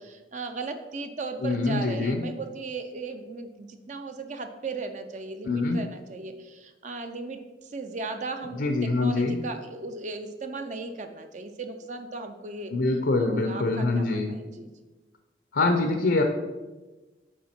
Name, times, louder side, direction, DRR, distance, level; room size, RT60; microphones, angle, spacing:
voice 1, 0.0-12.7 13.2-14.7, right 3 dB, 40° right, 7 dB, 0.5 m, -37 dB
voice 2, 1.4-2.2 5.5-5.8 8.6-9.4 12.7-14.4 15.5-16.2, left 3 dB, 80° left, 4 dB, 0.7 m, -24 dB
7.4 x 5.1 x 4.3 m, 1.2 s
head